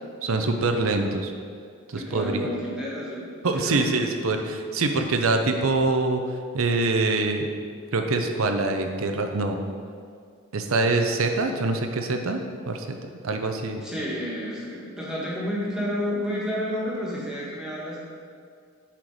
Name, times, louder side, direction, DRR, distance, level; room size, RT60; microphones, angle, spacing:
voice 1, 0.2-1.3 1.9-2.5 3.4-6.2 6.5-7.5 7.9-9.6 10.5-12.4 12.7-13.0 13.2-13.8, right 3 dB, 80° right, 5 dB, 0.7 m, -24 dB
voice 2, 1.9-3.8 13.8-18.0, equal, 5° right, -7 dB, 1.8 m, -30 dB
10.0 x 4.5 x 5.0 m, 2.2 s
head